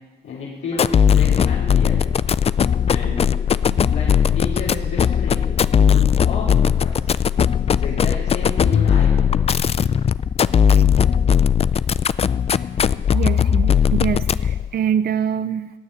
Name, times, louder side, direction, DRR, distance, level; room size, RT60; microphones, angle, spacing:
voice 1, 0.2-2.0 2.9-3.4 3.9-5.5 5.8-7.1 7.8-9.4, left 3 dB, 75° left, -8 dB, 3.8 m, -31 dB
sound 1, 0.7-14.7, left 8 dB, 30° left, 0.4 m, -18 dB
voice 2, 13.1-15.7, right 8 dB, 50° right, 13 dB, 0.6 m, -25 dB
16.0 x 6.5 x 9.9 m, 1.3 s
cardioid pair, 90°, 20 cm